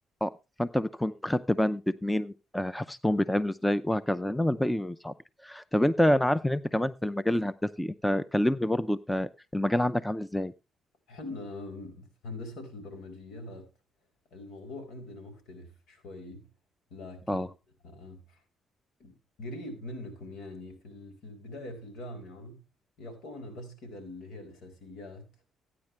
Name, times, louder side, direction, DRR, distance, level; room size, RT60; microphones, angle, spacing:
voice 1, 0.6-5.1 5.4-10.5 17.3-17.5, left 1 dB, 5° left, 0.5 m, -27 dB
voice 2, 11.1-13.7 14.3-16.5 16.9-17.5 17.8-18.4 19.0-22.6 23.0-25.3, left 2 dB, 80° left, 4.5 m, -43 dB
14.5 x 9.6 x 3.2 m
cardioid pair, 90°, 0 cm